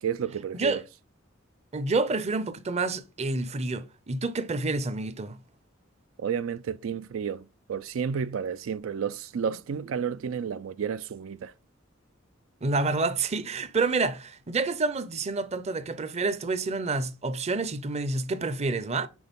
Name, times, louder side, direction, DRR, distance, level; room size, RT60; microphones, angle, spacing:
voice 1, 0.0-0.8 6.2-11.5, right 7 dB, 90° right, 0.4 m, -31 dB
voice 2, 1.7-5.4 12.6-19.1, right 3 dB, 35° right, 0.6 m, -28 dB
6.2 x 3.9 x 5.2 m
head